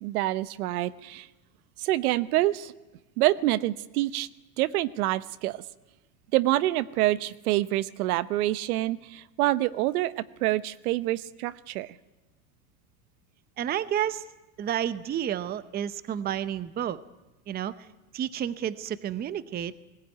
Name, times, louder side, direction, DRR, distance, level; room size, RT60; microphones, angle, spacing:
voice 1, 0.0-1.3 1.8-2.7 3.2-4.3 4.6-5.6 6.3-12.0, right 16 dB, 75° right, 15 dB, 1.1 m, -26 dB
voice 2, 13.6-14.2 14.6-17.0 17.5-17.8 18.1-19.7, right 10 dB, 20° right, 14 dB, 0.7 m, -30 dB
20.0 x 18.0 x 9.4 m, 1.0 s
supercardioid pair, 135°, 45 cm